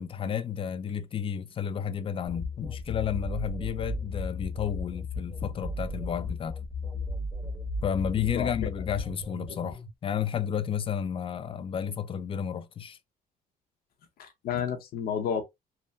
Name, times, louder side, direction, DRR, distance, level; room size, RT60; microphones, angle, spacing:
voice 1, 0.0-6.6 7.8-13.0, left 8 dB, 30° left, 0.3 m, -32 dB
sound 1, 2.3-9.9, left 2 dB, 10° right, 1.1 m, -35 dB
voice 2, 8.2-8.5 9.5-9.6 14.2-15.4, left 7 dB, 65° left, 0.7 m, -31 dB
3.4 x 2.0 x 2.5 m
cardioid pair, 110°, 17 cm